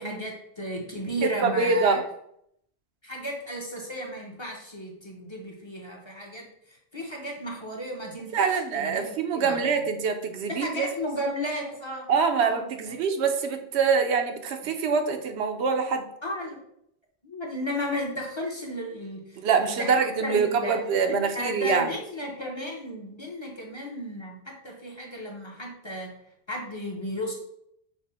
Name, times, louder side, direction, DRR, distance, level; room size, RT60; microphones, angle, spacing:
voice 1, 0.0-2.0 3.0-9.8 10.5-12.1 12.4-13.0 16.2-16.6 17.2-20.8 21.1-27.3, equal, 30° left, -1 dB, 0.7 m, -34 dB
voice 2, 1.2-2.0 8.3-10.9 12.1-16.1 19.4-21.9, right 5 dB, 80° right, 5 dB, 0.9 m, -25 dB
5.9 x 2.0 x 4.2 m, 0.74 s
omnidirectional pair, 1.1 m